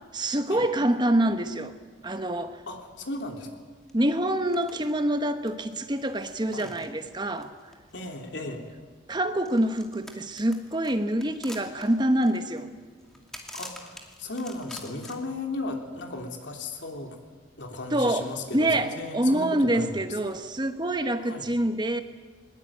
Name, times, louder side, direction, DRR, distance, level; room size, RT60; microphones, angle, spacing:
voice 1, 0.1-1.7 2.0-2.6 3.9-7.5 9.1-12.7 17.9-22.0, right 1 dB, 25° right, 8 dB, 1.1 m, -26 dB
voice 2, 2.7-3.5 6.5-6.7 7.9-8.7 13.5-17.2 17.6-20.0 21.2-21.5, left 2 dB, 75° left, 3 dB, 3.3 m, -36 dB
sound 1, 3.9-4.0 4.3-4.9 5.2-8.4 9.4-15.1, equal, 5° left, 2.5 m, -46 dB
21.5 x 20.5 x 8.9 m, 1.5 s
head